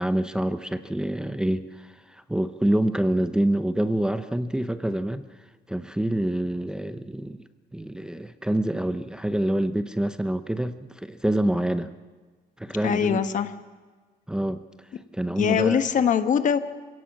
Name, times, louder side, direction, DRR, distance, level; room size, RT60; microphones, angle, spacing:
voice 1, 0.0-5.3 5.7-7.4 7.7-11.9 12.6-13.2 14.3-14.6 15.1-15.8, right 1 dB, 5° right, 9 dB, 0.7 m, -26 dB
voice 2, 12.8-13.5 15.4-16.6, left 8 dB, 50° left, 9 dB, 1.3 m, -22 dB
27.5 x 17.0 x 7.5 m, 1.4 s
cardioid pair, 155°, 16 cm